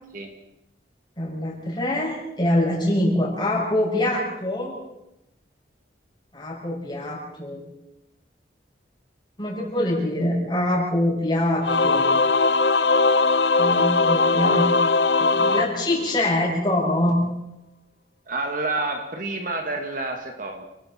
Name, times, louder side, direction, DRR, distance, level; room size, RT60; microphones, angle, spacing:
voice 1, 1.2-4.7 6.3-7.6 9.4-12.1 13.6-14.7 15.2-17.2, left 1 dB, 25° left, -3 dB, 7.2 m, -24 dB
Singing / Musical instrument, 11.6-16.5, left 3 dB, 70° left, 0.7 m, -20 dB
voice 2, 18.3-20.6, right 2 dB, 45° right, 4 dB, 2.3 m, -29 dB
29.5 x 19.5 x 4.6 m, 0.88 s
head